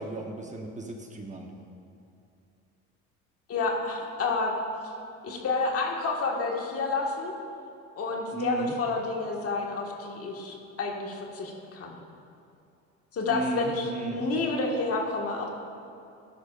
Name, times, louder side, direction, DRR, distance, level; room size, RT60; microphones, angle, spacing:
voice 1, 0.0-1.5 8.3-8.7 13.3-14.3, right 3 dB, 25° right, 2 dB, 1.0 m, -34 dB
voice 2, 3.5-4.6 5.2-7.3 8.0-11.9 13.1-15.5, left 3 dB, 50° left, 0 dB, 1.7 m, -29 dB
12.5 x 10.5 x 2.5 m, 2.6 s
supercardioid pair, 100°, 31 cm